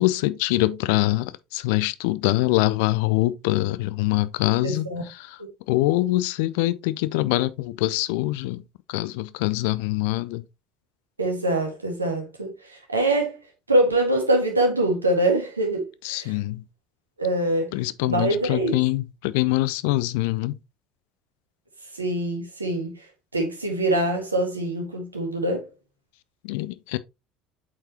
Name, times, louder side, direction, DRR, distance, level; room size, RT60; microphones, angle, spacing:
voice 1, 0.0-5.4 5.7-8.6 8.9-10.5 16.0-16.7 17.7-20.6 26.4-27.0, left 18 dB, 60° left, 0.4 m, -24 dB
voice 2, 4.6-5.0 5.4-5.5 11.2-13.4 13.7-16.3 17.2-17.7 18.0-18.8 21.9-23.0 23.3-25.6, right 1 dB, 85° right, 1.7 m, -24 dB
8.2 x 4.6 x 2.9 m
figure-of-eight pair, 65°, 0 cm